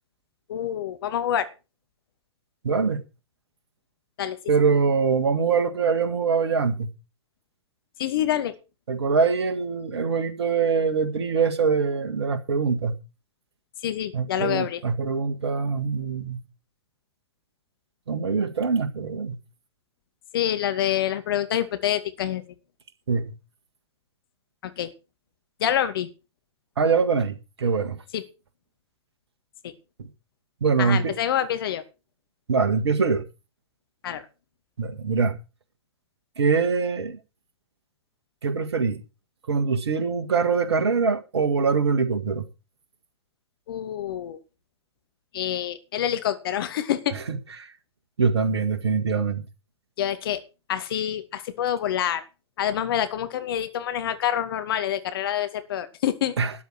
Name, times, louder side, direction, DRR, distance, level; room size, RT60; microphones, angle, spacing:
voice 1, 0.5-1.5 4.2-4.4 8.0-8.5 13.8-14.8 20.3-22.4 24.6-24.9 25.6-26.1 28.1-28.2 29.6-29.7 30.8-31.8 34.0-34.3 43.7-44.4 45.3-47.1 50.0-50.4 50.7-52.2 52.6-56.4, left 10 dB, 50° left, 2.3 m, -26 dB
voice 2, 2.6-3.0 4.5-6.9 8.9-13.0 14.1-16.4 18.1-19.4 23.1-23.3 26.8-28.0 30.6-31.1 32.5-33.3 34.8-35.4 36.4-37.2 38.4-39.0 39.5-42.5 47.3-47.7 48.2-49.4 56.4-56.5, right 5 dB, 65° right, 1.7 m, -23 dB
12.5 x 8.8 x 6.4 m
figure-of-eight pair, 110°, 15 cm